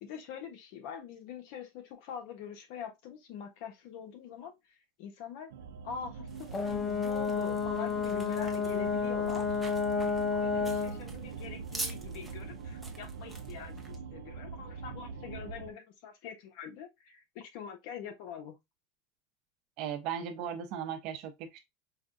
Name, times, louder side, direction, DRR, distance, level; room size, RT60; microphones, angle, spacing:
voice 1, 0.0-5.5 5.8-9.6 10.3-18.5, left 7 dB, 60° left, 1.0 m, -44 dB
sound 1, 5.5-15.7, right 6 dB, 90° right, 0.5 m, -43 dB
sound 2, 6.3-14.0, right 2 dB, 5° right, 0.7 m, -47 dB
Brass instrument, 6.5-11.0, left 5 dB, 30° left, 0.4 m, -31 dB
voice 2, 19.8-21.6, right 8 dB, 55° right, 0.8 m, -37 dB
4.7 x 2.3 x 2.5 m
supercardioid pair, 140°, 0 cm